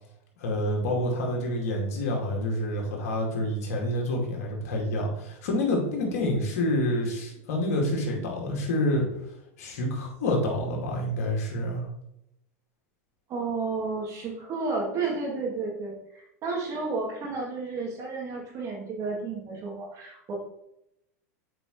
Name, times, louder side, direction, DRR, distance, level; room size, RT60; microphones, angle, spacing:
voice 1, 0.4-9.0 9.6-11.9, left 1 dB, 70° left, -1 dB, 2.2 m, -28 dB
voice 2, 13.3-20.3, right 4 dB, 40° right, -2 dB, 2.6 m, -32 dB
7.7 x 4.9 x 3.2 m, 0.81 s
hypercardioid pair, 105°, 8 cm